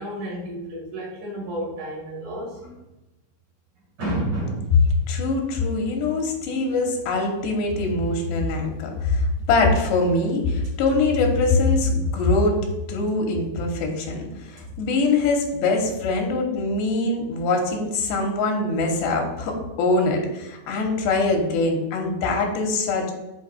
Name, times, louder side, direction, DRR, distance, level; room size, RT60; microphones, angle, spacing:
voice 1, 0.0-2.7 4.0-4.7 14.6-14.7, right 1 dB, 50° right, -5 dB, 3.0 m, -30 dB
voice 2, 5.1-12.6 12.9-23.1, left 3 dB, 85° left, 2 dB, 3.1 m, -23 dB
10.5 x 4.6 x 2.3 m, 1.0 s
omnidirectional pair, 4.7 m